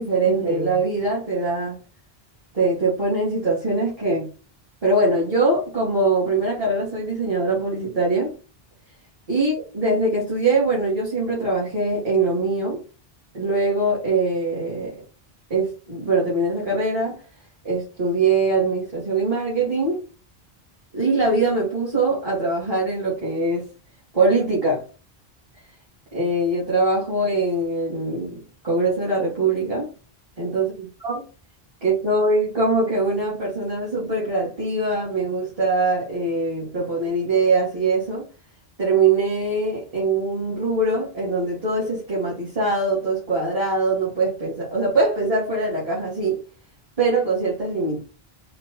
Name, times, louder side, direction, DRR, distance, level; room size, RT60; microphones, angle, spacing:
voice 1, 0.0-1.8 2.5-4.3 4.8-8.3 9.3-12.8 13.3-15.0 15.5-17.2 17.6-20.0 20.9-23.7 24.1-24.8 26.1-29.9 30.4-30.7 31.0-31.2 31.8-38.3 38.8-46.4 47.0-48.0, right 2 dB, 35° right, 2.7 m, -22 dB
5.2 x 2.9 x 3.3 m
omnidirectional pair, 1.0 m